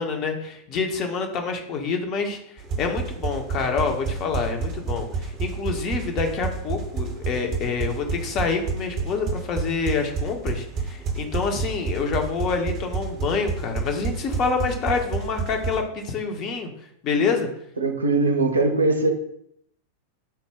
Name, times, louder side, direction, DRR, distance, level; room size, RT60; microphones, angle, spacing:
voice 1, 0.0-16.7 17.0-17.5, left 4 dB, 35° left, 4 dB, 0.7 m, -27 dB
sound 1, 2.6-15.8, right 4 dB, 35° right, 0.8 m, -30 dB
voice 2, 17.8-19.1, right 3 dB, 75° right, 5 dB, 0.5 m, -21 dB
5.5 x 2.1 x 3.4 m, 0.71 s
figure-of-eight pair, 90°, 0 cm